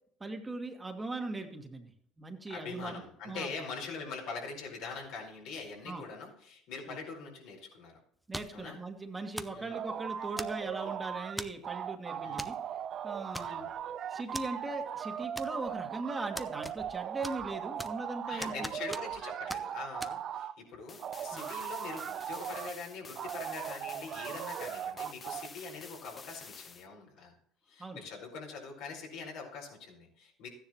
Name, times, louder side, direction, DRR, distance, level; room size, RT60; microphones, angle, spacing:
voice 1, 0.2-1.9 2.2-3.5 5.8-6.0 6.9-7.0 8.3-12.6 13.0-13.7 14.1-18.7 21.3-21.5 27.8-28.0, right 2 dB, 20° right, 4 dB, 1.7 m, -39 dB
voice 2, 2.5-8.0 8.5-8.8 9.5-9.8 12.2-12.5 13.3-13.7 18.3-27.3 27.7-30.5, left 4 dB, 70° left, 0 dB, 4.7 m, -43 dB
sound 1, 8.3-8.7 9.4-9.6 10.4-10.8 11.4-11.7 12.4-12.6 12.8-12.9 13.3-13.8 14.3-14.5 15.4-15.8 16.4-17.0 17.2-18.1 18.4-19.2 19.5-19.6 20.0-20.1, equal, 5° right, 0.8 m, -41 dB
sound 2, 9.7-11.4 11.6-20.5 21.0-22.8 23.2-25.5, right 9 dB, 50° right, 0.6 m, -39 dB
sound 3, 20.9-26.9, left 5 dB, 30° left, 0.9 m, -50 dB
14.5 x 10.0 x 3.1 m, 0.68 s
hypercardioid pair, 75°, 0 cm